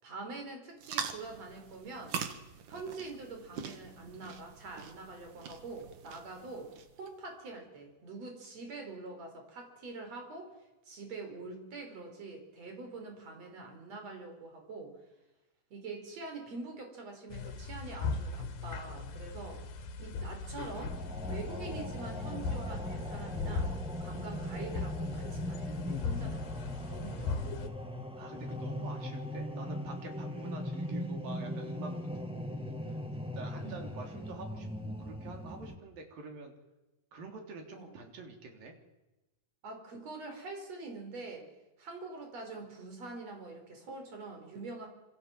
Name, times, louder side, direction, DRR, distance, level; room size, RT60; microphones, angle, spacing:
voice 1, 0.0-2.2 2.7-6.7 7.0-10.6 10.9-14.9 15.7-19.6 20.0-21.0 21.3-23.7 24.0-27.5 28.7-28.9 33.6-33.8 35.5-35.6 37.7-37.9 39.6-41.5 41.8-44.9, right 3 dB, 50° right, 4 dB, 5.9 m, -45 dB
sound 1, 0.8-7.1, right 7 dB, 65° right, 3.1 m, -43 dB
sound 2, 17.3-27.7, left 4 dB, 85° left, 3.5 m, -38 dB
sound 3, 20.7-35.7, equal, ahead, 1.3 m, -39 dB
voice 2, 28.2-32.0 32.5-33.0 33.3-36.5 37.1-38.8, right 3 dB, 80° right, 3 dB, 5.3 m, -47 dB
27.0 x 26.0 x 7.5 m, 1.0 s
omnidirectional pair, 4.0 m